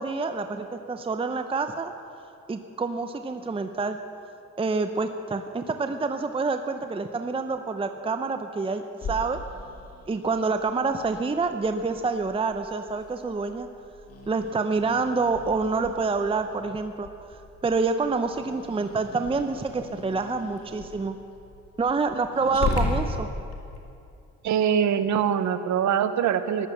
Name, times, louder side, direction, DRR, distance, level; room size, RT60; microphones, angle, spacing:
voice 1, 0.0-1.9 2.5-4.0 4.6-9.4 10.1-13.7 14.3-17.1 17.6-21.2 21.8-23.3, right 4 dB, 20° right, 8 dB, 0.7 m, -27 dB
Growling, 9.0-23.8, left 3 dB, 50° left, 2.3 m, -37 dB
voice 2, 24.4-26.7, right 8 dB, 70° right, 11 dB, 1.0 m, -23 dB
14.5 x 10.5 x 7.1 m, 2.6 s
cardioid pair, 90°, 30 cm